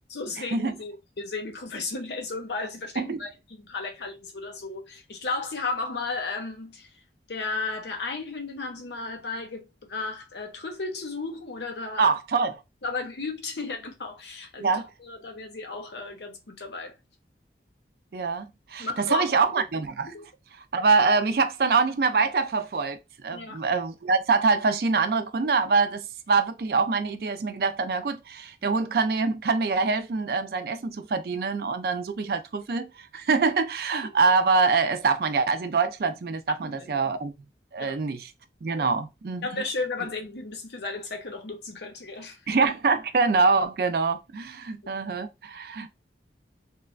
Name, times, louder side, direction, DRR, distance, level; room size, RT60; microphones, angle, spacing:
voice 1, 0.1-6.9 7.3-12.1 12.8-16.9 18.8-19.6 20.1-20.3 23.3-23.6 34.0-34.1 36.6-37.1 37.8-38.0 38.8-38.9 39.4-42.4 44.8-44.9, left 3 dB, 75° left, 0.7 m, -34 dB
voice 2, 12.0-12.6 14.6-14.9 18.1-20.1 20.7-37.3 37.7-38.3 38.6-39.6 42.5-45.9, right 4 dB, 55° right, 0.4 m, -25 dB
3.2 x 2.1 x 2.4 m
head